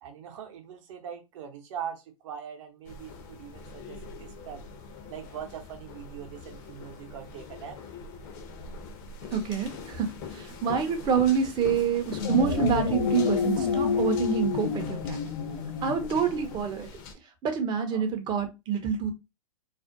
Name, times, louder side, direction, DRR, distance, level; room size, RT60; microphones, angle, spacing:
voice 1, 0.0-4.6 5.1-7.8 15.8-15.9 17.9-18.0, right 8 dB, 55° right, 0.8 m, -41 dB
sound 1, 2.8-17.1, left 4 dB, 40° left, 0.6 m, -43 dB
voice 2, 9.3-15.2 15.8-16.9 17.4-19.1, right 7 dB, 25° right, 0.6 m, -27 dB
sound 2, 12.0-16.6, left 6 dB, 85° left, 0.5 m, -29 dB
2.5 x 2.1 x 2.5 m
hypercardioid pair, 115°, 19 cm